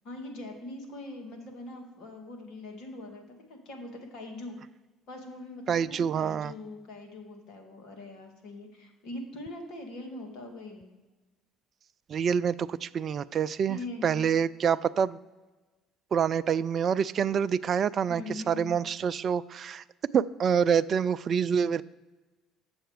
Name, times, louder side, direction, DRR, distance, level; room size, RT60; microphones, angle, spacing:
voice 1, 0.0-4.6 5.1-10.9 13.7-14.3 18.1-18.8, left 2 dB, 65° left, 3 dB, 2.1 m, -42 dB
voice 2, 5.7-6.5 12.1-15.2 16.1-19.8 20.1-21.8, right 7 dB, 50° right, 16 dB, 0.3 m, -27 dB
7.6 x 7.1 x 4.9 m, 1.2 s
hypercardioid pair, 60°, 0 cm